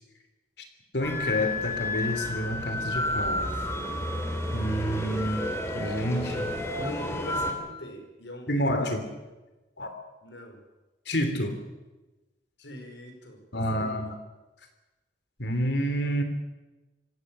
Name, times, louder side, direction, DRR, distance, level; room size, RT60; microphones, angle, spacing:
voice 1, 0.9-3.5 4.5-5.4 5.7-6.5 8.5-9.0 9.8-9.9 11.1-11.6 13.5-14.1 15.4-16.2, equal, 70° left, 7 dB, 3.3 m, -28 dB
sound 1, 1.0-7.5, left 1 dB, 15° left, 3.2 m, -31 dB
voice 2, 6.8-9.1 10.2-10.6 12.6-14.1, equal, 90° left, 4 dB, 5.3 m, -41 dB
25.5 x 16.0 x 7.7 m, 1.1 s
head